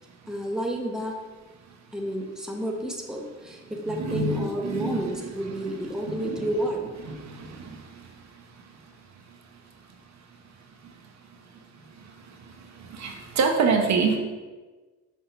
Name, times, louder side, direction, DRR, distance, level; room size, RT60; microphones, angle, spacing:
voice 1, 0.3-1.1 1.9-6.9, equal, ahead, 0 dB, 0.9 m, -30 dB
voice 2, 4.0-5.1 6.1-6.4 7.1-7.3 13.0-14.2, right 4 dB, 65° right, 3 dB, 1.0 m, -25 dB
6.1 x 3.7 x 5.5 m, 1.3 s
cardioid pair, 90°, 30 cm